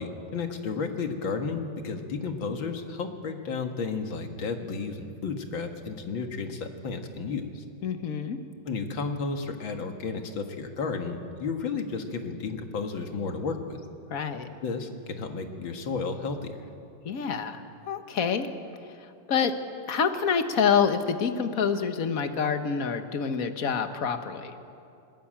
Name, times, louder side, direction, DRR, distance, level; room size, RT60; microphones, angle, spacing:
voice 1, 0.0-7.6 8.7-13.8 14.6-16.7, left 4 dB, 70° left, 5 dB, 2.4 m, -32 dB
voice 2, 7.8-8.4 14.1-14.5 17.0-17.6 17.9-18.5 19.3-19.5 19.9-24.5, left 6 dB, 45° left, 8 dB, 1.5 m, -27 dB
21.5 x 20.5 x 8.9 m, 2.6 s
omnidirectional pair, 2.2 m